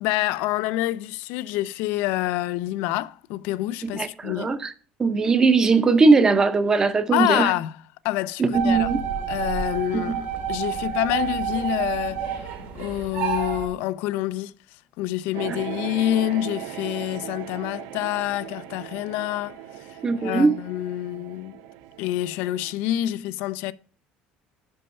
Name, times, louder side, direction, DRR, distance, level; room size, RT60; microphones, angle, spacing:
voice 1, 0.0-4.5 7.1-7.8 8.0-8.9 9.3-12.3 12.7-14.5 15.0-19.6 19.9-21.6 22.0-23.7, left 15 dB, 75° left, 0.3 m, -27 dB
voice 2, 3.8-4.7 5.0-7.5 8.4-9.0 9.9-10.1 15.5-15.6 20.0-20.5, right 4 dB, 20° right, 0.6 m, -20 dB
sound 1, 8.5-13.7, right 8 dB, 70° right, 1.8 m, -29 dB
sound 2, 15.3-22.7, right 11 dB, 85° right, 0.5 m, -38 dB
5.5 x 5.4 x 5.3 m
cardioid pair, 160°, 3 cm